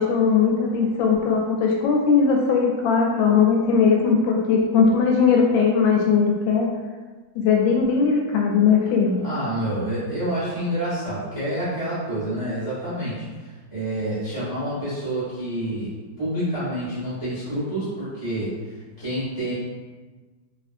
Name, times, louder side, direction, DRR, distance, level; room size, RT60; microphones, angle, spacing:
voice 1, 0.0-6.7 7.3-9.1, left 5 dB, 80° left, -1 dB, 1.3 m, -19 dB
voice 2, 9.2-13.3 13.7-19.5, right 1 dB, 35° right, -11 dB, 0.6 m, -28 dB
3.1 x 2.5 x 2.5 m, 1.3 s
omnidirectional pair, 2.1 m